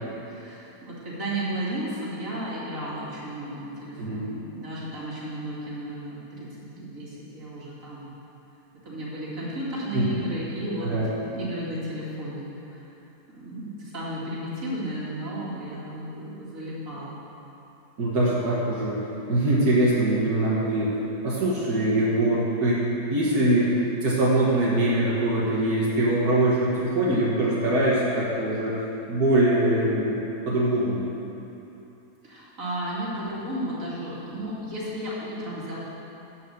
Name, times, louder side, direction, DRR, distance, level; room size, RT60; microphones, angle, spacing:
voice 1, 0.2-8.1 8.7-12.9 13.3-17.2 32.2-35.8, right 1 dB, 60° right, -7 dB, 2.8 m, -33 dB
voice 2, 18.0-19.0 19.3-21.0 21.2-22.8 23.1-28.8 29.1-31.0, right 1 dB, 90° right, -7 dB, 2.2 m, -23 dB
12.0 x 5.4 x 7.8 m, 3.0 s
omnidirectional pair, 1.6 m